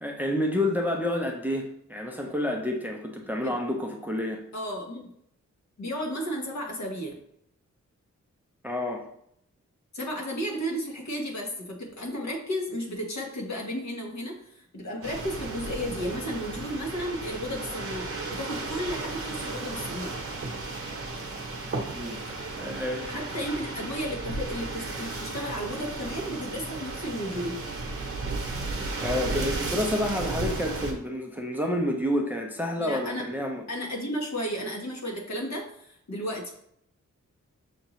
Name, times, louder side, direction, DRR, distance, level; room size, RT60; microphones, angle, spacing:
voice 1, 0.0-4.4 8.6-9.1 21.9-23.6 29.0-33.6, left 1 dB, 5° right, 1 dB, 0.5 m, -29 dB
voice 2, 4.5-5.1 5.8-7.2 9.9-20.1 23.1-27.6 32.8-33.3 33.7-36.5, equal, 65° left, 0 dB, 1.2 m, -33 dB
sound 1, 15.0-30.9, right 3 dB, 50° right, 0.9 m, -34 dB
6.5 x 2.6 x 3.0 m, 0.70 s
wide cardioid pair, 145°, 30 cm